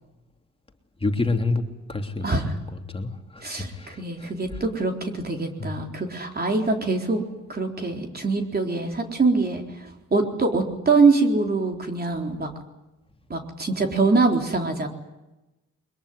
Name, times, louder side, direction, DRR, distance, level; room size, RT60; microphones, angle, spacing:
voice 1, 1.0-1.6 1.9-2.4 2.7-4.3 5.6-5.7, left 3 dB, 20° left, 3.0 m, -28 dB
voice 2, 2.2-2.5 3.4-7.2 7.5-12.5 13.3-14.9, right 3 dB, 30° right, 3.9 m, -24 dB
23.0 x 21.5 x 9.7 m
cardioid pair, 90°, 30 cm